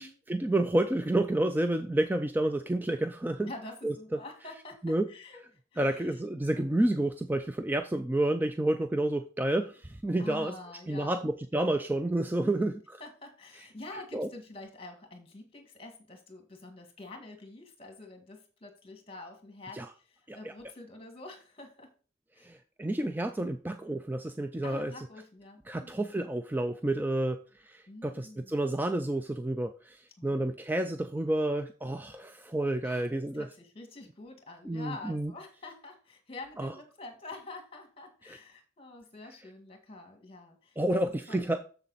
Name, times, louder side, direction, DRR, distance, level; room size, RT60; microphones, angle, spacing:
voice 1, 0.0-3.5 3.8-3.9 4.8-5.1 5.8-10.5 10.9-12.8 13.9-14.3 19.7-19.9 20.3-20.5 22.4-25.1 25.7-33.5 34.6-35.3 36.6-36.7 38.3-38.4 40.8-41.6, right 1 dB, 10° right, 8 dB, 0.3 m, -30 dB
voice 2, 3.5-5.4 5.7-6.2 6.5-6.8 10.2-11.3 12.4-12.7 13.0-21.9 22.3-22.5 24.6-26.0 27.9-28.6 30.2-30.5 32.8-33.1 33.3-41.0 41.3-41.5, left 2 dB, 25° left, 4 dB, 1.8 m, -47 dB
7.2 x 7.1 x 4.0 m, 0.38 s
head